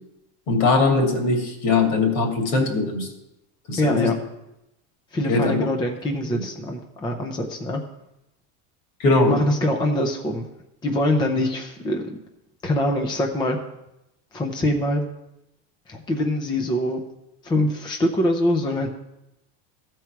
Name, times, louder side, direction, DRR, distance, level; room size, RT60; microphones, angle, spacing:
voice 1, 0.5-3.1 3.7-4.1 5.3-5.6 6.3-6.4 9.0-9.4, left 3 dB, 65° left, 2 dB, 2.5 m, -20 dB
voice 2, 3.8-4.1 5.1-7.8 9.2-10.5 10.8-12.2 12.6-13.6 14.3-15.0 15.9-17.0 17.4-18.9, left 1 dB, 10° left, 3 dB, 0.5 m, -24 dB
13.5 x 4.6 x 5.9 m, 0.88 s
supercardioid pair, 150°, 41 cm